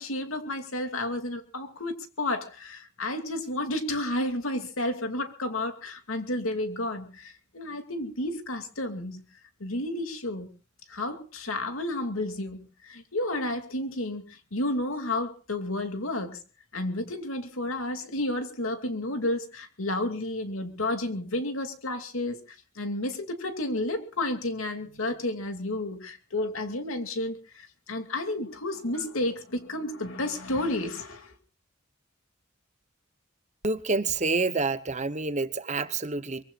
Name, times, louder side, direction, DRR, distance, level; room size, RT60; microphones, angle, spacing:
voice 1, 0.0-9.2 9.6-10.5 10.9-16.4 16.7-22.4 22.8-31.3, left 1 dB, 80° left, 2.6 m, -31 dB
voice 2, 33.6-36.4, right 3 dB, 35° right, 0.9 m, -28 dB
23.5 x 23.5 x 2.5 m
head